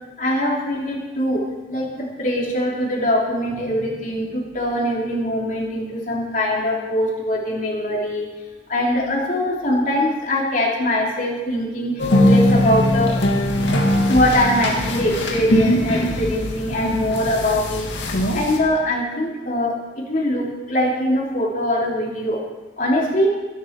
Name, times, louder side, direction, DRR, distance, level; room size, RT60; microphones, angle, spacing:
voice 1, 0.2-1.4 1.7-8.2 8.7-13.1 14.1-17.9 18.3-22.4 22.8-23.3, left 1 dB, 50° left, -3 dB, 3.2 m, -22 dB
sound 1, 12.0-18.6, left 1 dB, 90° left, 2.2 m, -20 dB
14.5 x 14.0 x 4.7 m, 1.2 s
head